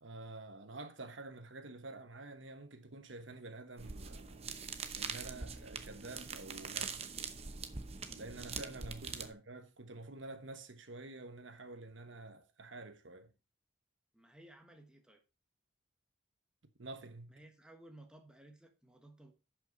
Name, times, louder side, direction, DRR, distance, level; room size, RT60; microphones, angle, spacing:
voice 1, 0.0-4.6 4.9-7.1 8.1-13.3 16.8-17.3, right 2 dB, 75° right, 1.2 m, -49 dB
sound 1, 3.8-9.3, right 5 dB, 30° right, 0.9 m, -43 dB
voice 2, 14.1-15.2 17.3-19.3, right 1 dB, 5° right, 1.3 m, -57 dB
11.5 x 5.7 x 3.9 m
head